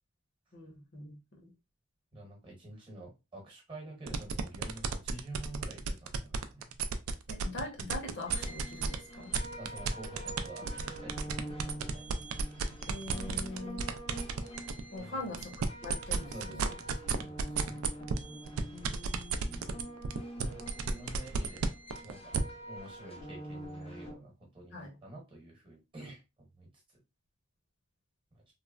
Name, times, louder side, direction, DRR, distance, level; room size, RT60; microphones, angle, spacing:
voice 1, 0.5-1.5 7.3-9.3 12.9-13.9 14.9-16.7 18.7-19.8 24.7-25.0, left 2 dB, 50° left, 0.8 m, -43 dB
voice 2, 2.1-6.7 9.6-11.3 11.6-12.1 15.0-15.3 16.3-17.8 20.4-21.7 22.0-22.3 22.7-26.2 26.6-26.7, right 1 dB, 25° right, 1.0 m, -48 dB
sound 1, 4.1-9.0 9.3-14.8 15.2-22.4, right 6 dB, 80° right, 0.3 m, -33 dB
sound 2, 8.3-24.1, right 1 dB, 30° left, 0.5 m, -45 dB
3.0 x 2.0 x 2.3 m
head